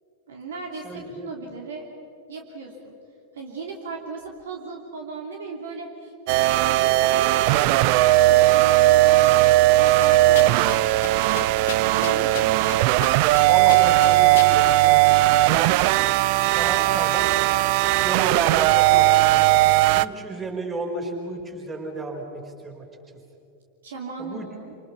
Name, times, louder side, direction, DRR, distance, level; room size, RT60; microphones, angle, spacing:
voice 1, 0.3-1.9 2.3-3.0 3.3-11.4 11.8-12.7 15.7-16.2 23.8-24.8, right 4 dB, 60° right, 1 dB, 2.8 m, -37 dB
voice 2, 0.8-1.3 13.5-15.1 16.6-17.3 18.0-19.4 19.9-22.8 24.2-24.5, right 2 dB, 20° right, 2 dB, 4.9 m, -32 dB
sound 1, 6.3-20.0, right 17 dB, 45° right, 0.5 m, -18 dB
sound 2, 10.0-10.8 11.0-11.1 11.4-12.8 13.0-13.4 13.7-14.5, left 13 dB, 55° left, 1.2 m, -32 dB
28.0 x 27.0 x 5.9 m, 2.6 s
figure-of-eight pair, 90°, 0 cm